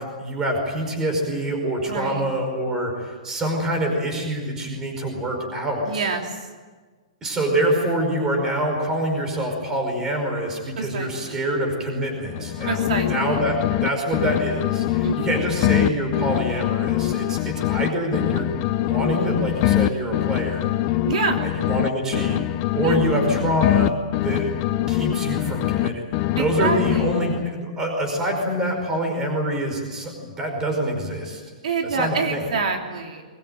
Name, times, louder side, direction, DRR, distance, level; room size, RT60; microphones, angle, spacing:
voice 1, 0.0-6.1 7.2-12.8 13.1-18.6 18.8-20.7 21.4-22.4 22.7-24.6 24.9-26.0 26.3-31.4 31.9-32.4, right 1 dB, 10° right, 3 dB, 5.1 m, -25 dB
voice 2, 1.8-2.2 5.8-6.5 10.8-11.4 12.6-13.4 15.0-15.3 21.1-21.4 22.8-23.0 26.3-27.1 31.6-33.2, right 5 dB, 65° right, 2 dB, 3.3 m, -27 dB
sound 1, 12.2-13.9 14.1-17.9 18.1-21.9 22.1-25.9 26.1-27.5, left 15 dB, 25° left, 0.7 m, -23 dB
22.0 x 21.0 x 9.2 m, 1.4 s
hypercardioid pair, 170°, 4 cm